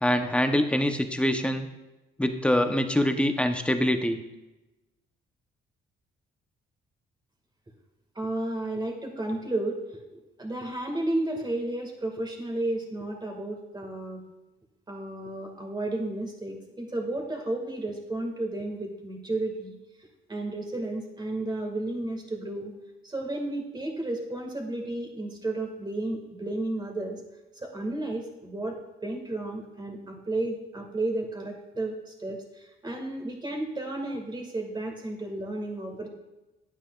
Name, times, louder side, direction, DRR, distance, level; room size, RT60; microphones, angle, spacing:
voice 1, 0.0-1.7 2.2-4.2, left 1 dB, 5° left, 7 dB, 0.8 m, -24 dB
voice 2, 8.2-9.8 10.1-14.2 14.9-19.7 20.3-22.7 23.0-27.2 27.5-36.1, right 2 dB, 20° right, 2 dB, 1.9 m, -32 dB
10.0 x 8.6 x 2.4 m, 1.1 s
cardioid pair, 90°, 20 cm